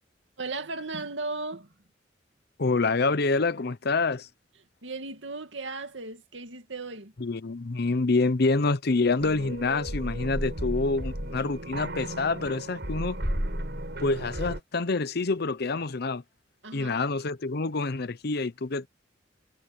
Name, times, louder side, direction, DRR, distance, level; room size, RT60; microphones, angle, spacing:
voice 1, 0.4-1.7 4.8-7.1 16.6-17.0, right 3 dB, 90° right, 2.4 m, -36 dB
voice 2, 2.6-4.3 7.2-13.2 14.0-16.2 16.7-18.9, left 3 dB, 60° left, 0.8 m, -27 dB
sound 1, 9.2-14.6, right 1 dB, 65° right, 7.3 m, -34 dB
head